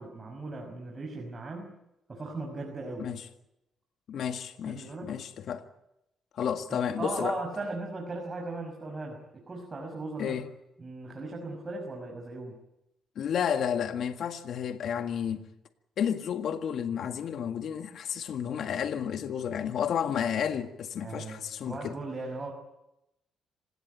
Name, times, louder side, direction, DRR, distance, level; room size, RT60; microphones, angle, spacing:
voice 1, 0.0-1.7 2.1-3.1 4.7-5.2 6.7-10.4 10.8-12.5 21.0-22.5, right 2 dB, 30° right, 5.9 m, -38 dB
voice 2, 4.1-5.6 6.3-7.4 10.2-10.5 13.2-15.5 16.0-22.0, left 8 dB, 65° left, 1.8 m, -31 dB
27.0 x 17.5 x 9.4 m
cardioid pair, 90°, 0 cm